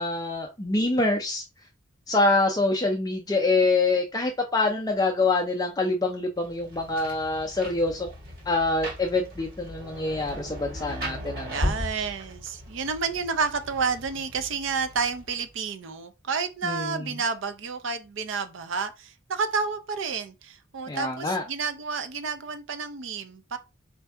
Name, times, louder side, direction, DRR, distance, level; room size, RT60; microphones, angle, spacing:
voice 1, 0.0-1.4 2.1-8.1 8.5-11.6 16.6-17.0 20.9-21.4, left 2 dB, 20° left, 0.4 m, -25 dB
Rain, 6.4-15.5, equal, 45° right, 1.5 m, -37 dB
voice 2, 11.5-23.6, right 5 dB, 65° right, 0.5 m, -30 dB
4.4 x 2.6 x 3.4 m
head